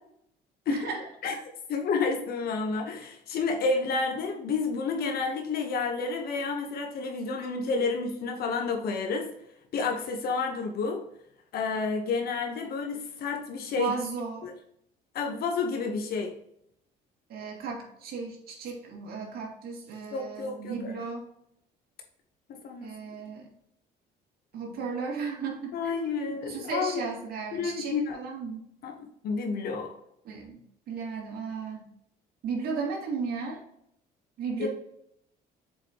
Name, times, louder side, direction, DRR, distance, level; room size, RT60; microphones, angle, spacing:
voice 1, 0.7-1.1 13.8-14.5 17.3-21.2 22.8-23.5 24.5-28.6 30.2-31.9 32.4-33.6 34.4-34.7, right 5 dB, 65° right, -1 dB, 2.3 m, -35 dB
voice 2, 1.7-9.3 9.7-11.0 11.5-13.9 14.4-14.5 15.1-16.3 20.1-21.1 22.5-22.9 25.7-27.0 27.5-28.2 28.8-28.9 29.2-29.9 34.6-34.7, left 4 dB, 65° left, 3 dB, 1.2 m, -30 dB
6.9 x 5.0 x 3.0 m, 0.73 s
cardioid pair, 110°, 17 cm